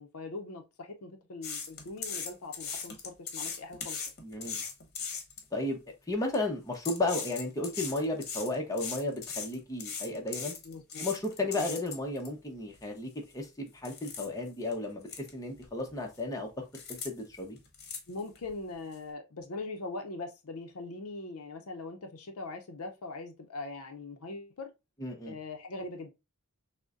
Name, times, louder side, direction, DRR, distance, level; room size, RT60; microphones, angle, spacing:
voice 1, 0.0-4.0 10.6-11.1 11.6-11.7 18.1-24.7 25.3-26.1, left 3 dB, 70° left, 0.6 m, -41 dB
sound 1, 1.4-5.4 6.1-6.3 6.7-12.3 12.8-12.9 13.3-13.5 13.8-14.3 14.7-14.8 15.1-15.3 15.6-16.2 16.7-17.1 17.4-18.5 18.9-19.0, left 6 dB, 45° left, 1.0 m, -39 dB
voice 2, 4.2-4.6 5.5-5.8 6.1-10.5 11.0-16.6 16.9-17.6 25.0-25.3, left 2 dB, 15° left, 0.8 m, -34 dB
6.2 x 2.1 x 2.4 m
head